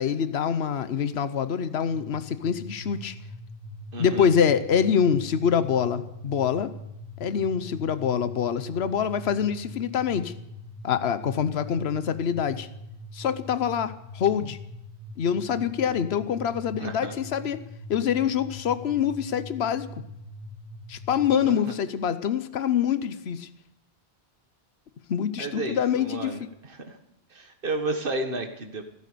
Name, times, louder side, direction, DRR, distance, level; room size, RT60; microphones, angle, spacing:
voice 1, 0.0-3.1 4.0-6.7 7.2-10.3 10.8-12.7 13.1-14.6 15.2-17.6 17.9-19.9 20.9-23.5 25.1-26.4, left 8 dB, 80° left, 13 dB, 1.1 m, -25 dB
sound 1, 1.9-21.4, left 1 dB, 85° right, 2.7 m, -42 dB
voice 2, 3.9-4.3 16.8-17.1 21.4-21.7 25.4-27.0 27.3-28.9, right 2 dB, 55° right, 5 dB, 1.9 m, -32 dB
15.5 x 13.5 x 6.8 m, 0.85 s
omnidirectional pair, 1.1 m